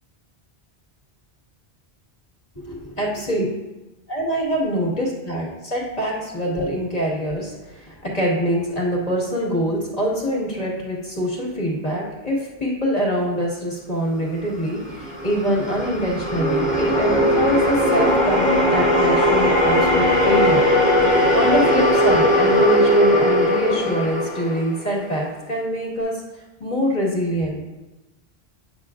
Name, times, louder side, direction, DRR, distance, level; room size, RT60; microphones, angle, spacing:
voice 1, 2.6-3.5 4.1-20.6 21.3-26.2 26.6-27.6, equal, 35° left, -4 dB, 1.9 m, -24 dB
sound 1, 14.8-25.2, equal, 5° left, 1.5 m, -18 dB
9.3 x 6.1 x 2.5 m, 1.1 s
omnidirectional pair, 1.1 m